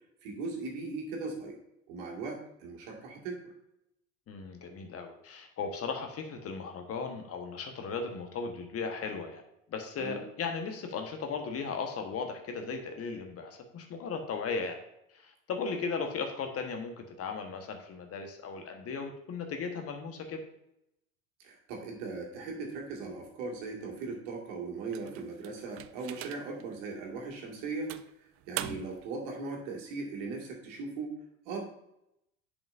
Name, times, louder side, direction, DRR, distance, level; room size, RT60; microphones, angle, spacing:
voice 1, 0.2-1.6 1.9-3.4 10.0-10.2 21.4-27.9 28.2-31.1 31.5-31.7, right 4 dB, 60° right, 0 dB, 2.1 m, -38 dB
voice 2, 4.3-9.4 9.7-14.8 15.1-20.4 28.6-28.8, left 5 dB, 35° left, 5 dB, 1.3 m, -37 dB
sound 1, 24.9-26.6 27.2-27.3 27.9-29.1, right 14 dB, 35° right, 0.4 m, -42 dB
10.5 x 5.1 x 2.6 m, 0.82 s
figure-of-eight pair, 70°, 39 cm